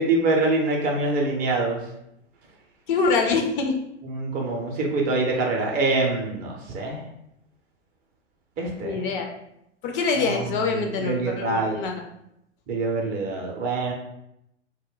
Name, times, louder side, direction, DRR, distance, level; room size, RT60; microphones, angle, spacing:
voice 1, 0.0-1.8 4.0-7.0 8.6-9.0 10.2-11.7 12.7-13.9, right 3 dB, 25° right, 0 dB, 0.5 m, -25 dB
voice 2, 2.9-3.8 8.8-9.3 9.8-11.9, left 4 dB, 45° left, 2 dB, 0.5 m, -24 dB
2.2 x 2.1 x 3.5 m, 0.81 s
figure-of-eight pair, 95°, 35 cm